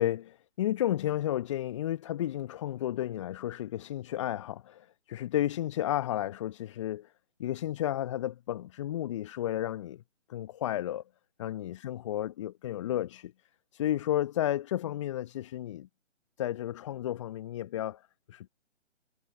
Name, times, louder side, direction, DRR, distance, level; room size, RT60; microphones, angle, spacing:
voice 1, 0.0-7.1 7.4-10.0 10.3-11.0 11.4-13.3 13.7-15.9 16.4-18.0 18.3-18.5, left 12 dB, 25° left, 1.2 m, -32 dB
figure-of-eight pair, 140°, 36 cm